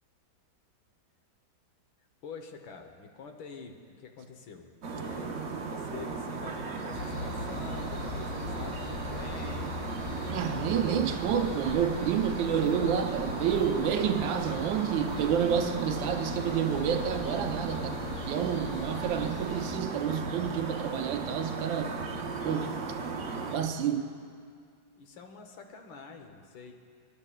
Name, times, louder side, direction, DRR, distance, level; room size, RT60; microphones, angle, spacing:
voice 1, 2.2-9.8 25.0-26.7, left 5 dB, 80° left, 4 dB, 1.7 m, -46 dB
sound 1, 4.8-23.6, right 4 dB, 55° right, 0.9 m, -36 dB
sound 2, 6.9-19.8, left 5 dB, 60° left, 1.0 m, -40 dB
voice 2, 10.3-22.0 22.4-22.9 23.5-24.1, right 8 dB, 75° right, 6 dB, 1.4 m, -29 dB
24.5 x 11.0 x 2.3 m, 2.2 s
omnidirectional pair, 2.2 m